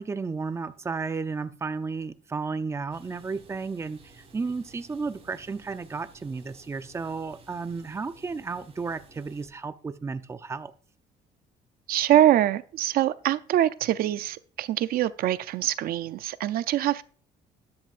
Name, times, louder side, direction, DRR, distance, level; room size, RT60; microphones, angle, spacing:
voice 1, 0.0-10.7, right 4 dB, 15° right, 11 dB, 0.6 m, -33 dB
sound 1, 2.9-9.5, right 2 dB, 35° right, 5.0 m, -54 dB
voice 2, 11.9-17.0, right 12 dB, 60° right, 14 dB, 0.5 m, -24 dB
13.0 x 11.0 x 2.5 m, 0.42 s
cardioid pair, 135°, 17 cm